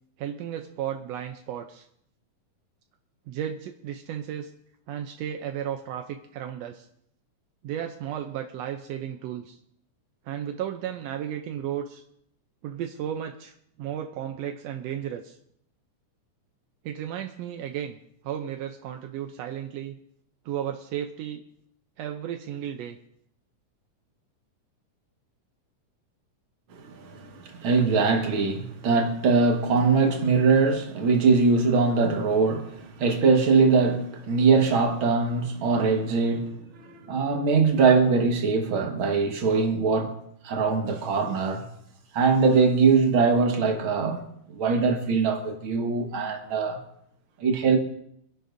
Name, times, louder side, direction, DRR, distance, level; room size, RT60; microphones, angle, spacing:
voice 1, 0.2-1.9 3.3-4.5 4.9-6.9 7.6-9.6 10.2-12.0 12.6-15.4 16.8-18.0 18.2-20.0 20.4-21.4 22.0-23.0, right 10 dB, 80° right, 1.5 m, -34 dB
voice 2, 26.7-40.2 40.4-41.7 42.1-44.2 44.5-46.8 47.4-47.8, right 4 dB, 50° right, 1.9 m, -22 dB
24.5 x 11.0 x 2.6 m
omnidirectional pair, 3.6 m